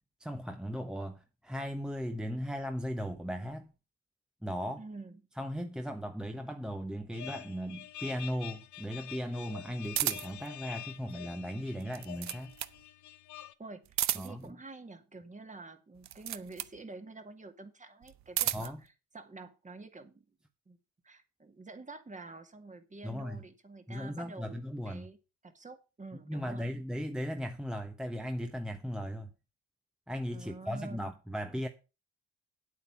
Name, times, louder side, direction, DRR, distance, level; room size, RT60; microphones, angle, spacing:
voice 1, 0.2-3.7 4.4-4.8 5.4-12.6 14.1-14.6 18.5-18.8 23.0-23.4 23.9-25.1 26.3-29.3 30.1-31.7, equal, ahead, 1.0 m, -37 dB
voice 2, 4.8-5.2 13.6-18.7 19.1-20.2 20.7-20.8 21.0-25.2 25.4-26.7 30.3-31.1, right 3 dB, 25° right, 2.0 m, -48 dB
sound 1, 7.1-13.5, left 13 dB, 70° left, 1.0 m, -47 dB
sound 2, 9.9-10.5 11.8-12.8 13.9-14.5 16.0-16.8 18.0-18.8, right 12 dB, 65° right, 0.7 m, -33 dB
9.4 x 8.4 x 5.8 m
cardioid pair, 90°, 30 cm